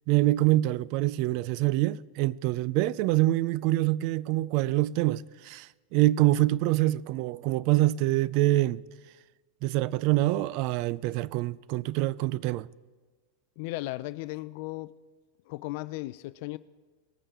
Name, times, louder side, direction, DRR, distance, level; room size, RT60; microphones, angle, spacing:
voice 1, 0.1-8.8 9.6-12.7, right 16 dB, 50° right, 0.3 m, -25 dB
voice 2, 13.6-14.9 15.5-16.6, left 19 dB, 60° left, 0.3 m, -36 dB
20.0 x 8.8 x 3.6 m
supercardioid pair, 130°, 0 cm